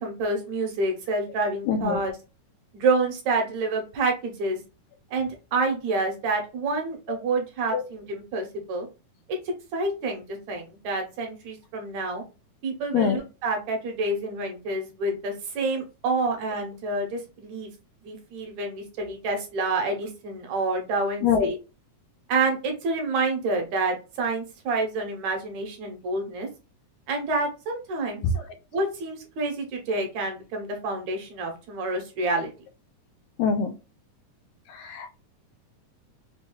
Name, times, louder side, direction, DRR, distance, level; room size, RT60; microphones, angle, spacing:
voice 1, 0.0-2.1 2.7-4.6 5.1-8.9 9.7-12.2 12.6-17.7 18.0-21.6 22.3-26.5 27.1-28.2 28.7-32.5, right 3 dB, 65° right, 3 dB, 2.4 m, -28 dB
voice 2, 1.7-2.0 7.7-7.8 12.9-13.2 21.2-21.5 33.4-33.7 34.9-35.1, left 7 dB, 80° left, 6 dB, 1.9 m, -23 dB
5.9 x 2.6 x 2.3 m, 0.30 s
omnidirectional pair, 3.6 m